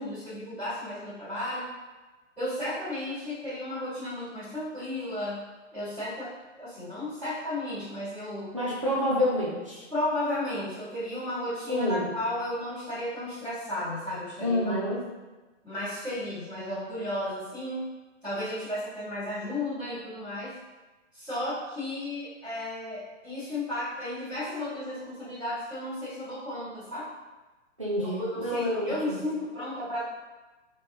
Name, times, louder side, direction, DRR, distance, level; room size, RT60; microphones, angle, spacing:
voice 1, 0.0-1.7 2.4-5.4 5.7-6.3 6.6-8.5 9.9-14.8 15.6-17.8 18.2-20.5 21.1-27.1 28.0-30.0, left 1 dB, 5° right, -21 dB, 1.4 m, -34 dB
voice 2, 8.5-9.9 11.7-12.1 14.4-15.0 27.8-29.2, left 1 dB, 25° right, -5 dB, 0.4 m, -28 dB
5.1 x 3.4 x 2.7 m, 1.2 s
hypercardioid pair, 175°, 38 cm